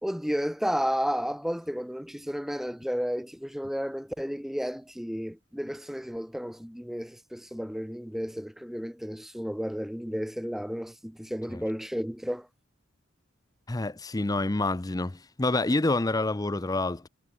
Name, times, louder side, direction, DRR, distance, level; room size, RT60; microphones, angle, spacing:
voice 1, 0.0-12.5, equal, ahead, 1.0 m, -32 dB
voice 2, 13.7-17.1, left 2 dB, 20° left, 0.6 m, -27 dB
head